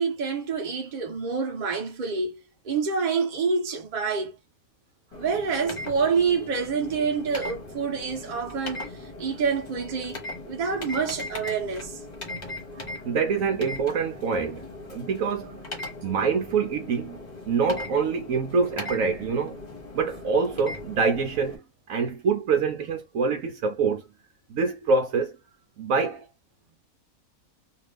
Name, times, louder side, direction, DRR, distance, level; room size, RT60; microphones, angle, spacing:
voice 1, 0.0-2.4 2.6-4.4 5.1-10.2 10.5-12.0, right 5 dB, 35° right, 0.8 m, -27 dB
sound 1, 5.1-21.6, left 2 dB, 35° left, 0.9 m, -39 dB
voice 2, 13.0-15.6 16.0-17.2 17.5-19.6 19.9-24.0 24.5-25.4 25.8-26.3, right 5 dB, 70° right, 1.0 m, -25 dB
2.7 x 2.4 x 3.3 m
omnidirectional pair, 1.6 m